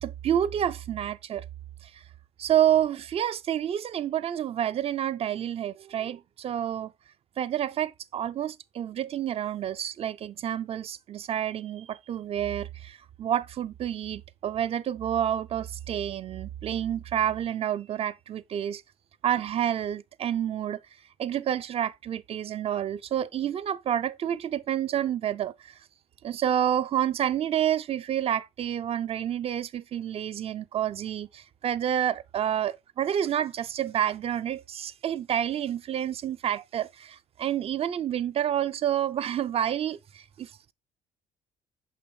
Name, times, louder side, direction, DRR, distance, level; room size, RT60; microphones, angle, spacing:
voice 1, 0.0-1.5 1.8-2.0 2.4-6.9 7.4-18.8 19.2-20.8 21.2-25.7 26.2-40.7, right 10 dB, 40° right, 0.4 m, -29 dB
6.1 x 5.5 x 3.2 m
cardioid pair, 130°, 15 cm